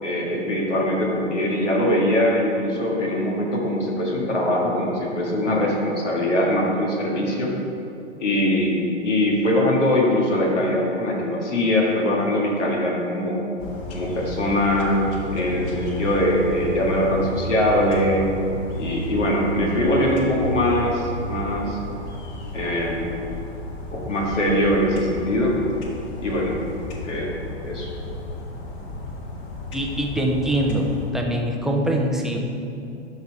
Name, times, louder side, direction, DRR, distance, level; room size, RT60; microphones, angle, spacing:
voice 1, 0.0-7.5 8.2-13.4 13.9-15.0 15.3-18.3 18.8-21.8 22.5-23.1 23.9-25.5 26.2-26.6 27.0-27.3 27.6-27.9, left 1 dB, 85° left, -2 dB, 1.8 m, -22 dB
sound 1, 13.6-31.1, left 1 dB, 35° left, 1.3 m, -33 dB
voice 2, 29.7-30.9 31.1-32.4, right 1 dB, ahead, 0 dB, 0.4 m, -23 dB
12.0 x 4.1 x 4.6 m, 2.7 s
hypercardioid pair, 115°, 36 cm